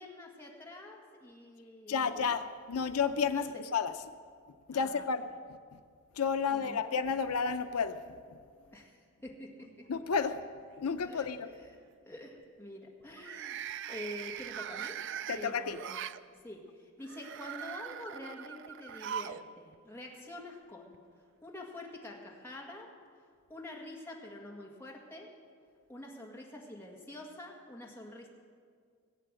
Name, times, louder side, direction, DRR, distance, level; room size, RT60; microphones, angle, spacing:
voice 1, 0.0-2.4 3.3-3.4 4.7-5.1 6.5-6.8 8.7-9.8 11.0-11.8 12.1-15.0 15.3-16.0 16.3-21.0 21.4-22.9 23.5-25.3 25.9-28.3, left 1 dB, 10° left, -2 dB, 1.9 m, -47 dB
voice 2, 1.9-3.9 4.7-5.2 6.2-8.0 9.9-10.4 10.8-11.5 15.3-15.8, left 6 dB, 85° left, 9 dB, 0.6 m, -31 dB
sound 1, 9.6-10.2 10.6-11.0 13.1-16.2 17.0-19.5 19.7-19.8 20.9-21.0, right 9 dB, 55° right, 0.4 m, -41 dB
19.0 x 8.3 x 7.5 m, 2.1 s
head